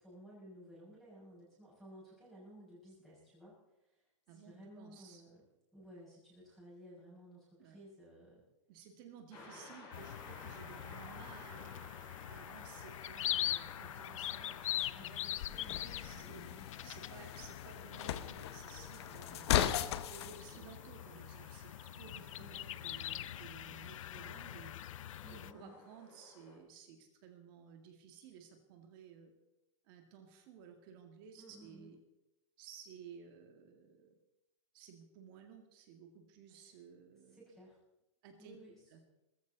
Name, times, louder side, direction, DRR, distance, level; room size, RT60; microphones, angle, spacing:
voice 1, 0.0-5.5 5.7-8.5 9.3-9.7 14.9-16.7 20.2-20.7 22.4-22.5 25.2-25.9 31.3-31.9 36.5-36.7 37.3-37.8 38.4-38.8, equal, ahead, -8 dB, 6.2 m, -56 dB
voice 2, 4.3-5.2 7.6-7.8 8.7-11.7 12.2-15.3 15.8-16.4 16.8-19.6 20.1-24.7 25.3-29.3 29.8-32.0 32.6-34.2 34.7-37.5 38.2-38.6 38.9-39.0, right 7 dB, 40° right, 4 dB, 2.2 m, -56 dB
sound 1, 9.3-26.6, left 3 dB, 25° left, 5.0 m, -56 dB
sound 2, 9.9-25.5, left 12 dB, 70° left, 0.6 m, -43 dB
sound 3, 15.4-20.4, left 11 dB, 50° left, 1.1 m, -37 dB
19.5 x 14.5 x 4.1 m, 0.90 s
supercardioid pair, 165°, 17 cm